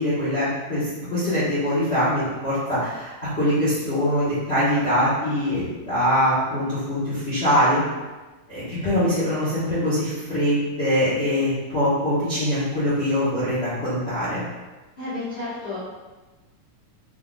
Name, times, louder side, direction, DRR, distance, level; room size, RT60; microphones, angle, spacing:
voice 1, 0.0-7.8 8.5-14.4, equal, 55° left, -12 dB, 0.7 m, -23 dB
voice 2, 15.0-15.8, left 2 dB, 35° left, -12 dB, 1.0 m, -32 dB
5.7 x 3.8 x 2.4 m, 1.2 s
omnidirectional pair, 3.7 m